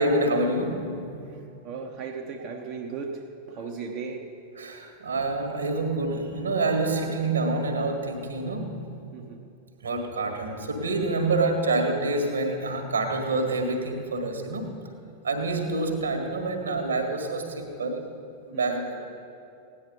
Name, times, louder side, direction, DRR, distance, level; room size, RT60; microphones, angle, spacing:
voice 1, 0.0-1.4 3.5-3.6 4.5-9.0 9.8-14.7 15.2-18.1 18.5-19.0, right 2 dB, 70° right, 5 dB, 1.8 m, -27 dB
voice 2, 1.3-4.4 9.1-9.5 18.5-18.8, right 5 dB, 35° right, 1 dB, 1.0 m, -37 dB
17.5 x 10.0 x 5.4 m, 2.5 s
figure-of-eight pair, 90°, 0 cm